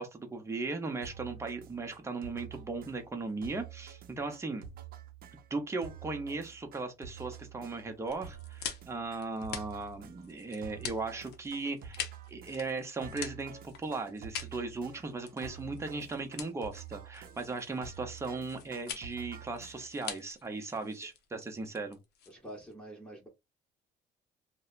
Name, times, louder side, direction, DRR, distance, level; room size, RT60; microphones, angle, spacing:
voice 1, 0.0-4.6 5.5-22.0, right 3 dB, 15° right, 0.7 m, -37 dB
sound 1, 1.0-20.1, right 9 dB, 60° right, 0.6 m, -49 dB
sound 2, 8.1-22.7, left 8 dB, 75° left, 0.6 m, -45 dB
voice 2, 22.3-23.3, right 1 dB, 5° left, 1.0 m, -47 dB
2.7 x 2.1 x 2.4 m
cardioid pair, 110°, 17 cm